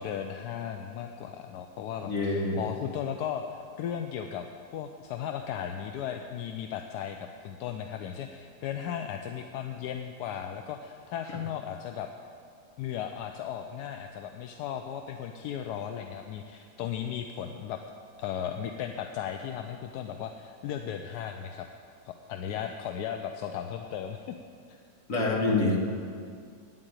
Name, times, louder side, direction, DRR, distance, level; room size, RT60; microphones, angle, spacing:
voice 1, 0.0-4.5 4.7-12.1 12.8-17.8 18.2-21.7 22.0-24.3, left 9 dB, 80° left, 5 dB, 1.1 m, -36 dB
voice 2, 2.0-2.6 25.1-25.8, left 2 dB, 55° left, -2 dB, 2.1 m, -26 dB
9.1 x 7.7 x 9.0 m, 2.2 s
omnidirectional pair, 1.7 m